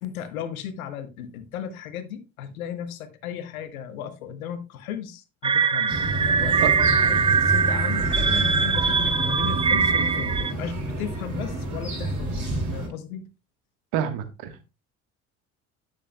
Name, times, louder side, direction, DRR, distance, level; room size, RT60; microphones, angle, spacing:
voice 1, 0.0-6.0 6.4-13.3, left 8 dB, 85° left, 1.0 m, -35 dB
sound 1, 5.4-10.5, right 6 dB, 15° right, 0.4 m, -22 dB
sound 2, 5.9-12.9, right 1 dB, 45° right, 4.8 m, -29 dB
voice 2, 13.9-14.6, right 9 dB, 70° right, 1.4 m, -28 dB
9.9 x 7.0 x 2.2 m
hypercardioid pair, 60°, 41 cm